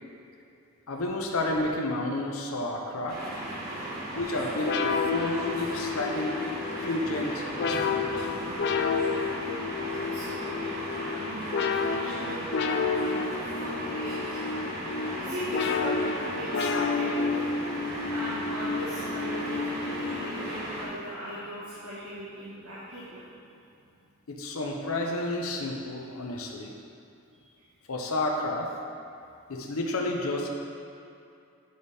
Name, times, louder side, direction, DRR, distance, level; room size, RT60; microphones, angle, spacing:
voice 1, 0.9-3.2 4.1-6.3 6.8-8.3 24.3-26.7 27.9-28.7 29.5-30.5, left 2 dB, 75° left, 1 dB, 0.6 m, -31 dB
sound 1, 3.1-20.9, right 1 dB, 45° right, 1.3 m, -36 dB
sound 2, 4.6-20.9, left 4 dB, 50° left, 0.3 m, -31 dB
voice 2, 9.5-11.6 11.9-12.5 12.8-13.2 13.6-14.4 15.1-17.3 18.1-23.2 27.4-27.5, equal, 85° right, -9 dB, 1.3 m, -39 dB
9.2 x 3.4 x 4.1 m, 2.6 s
head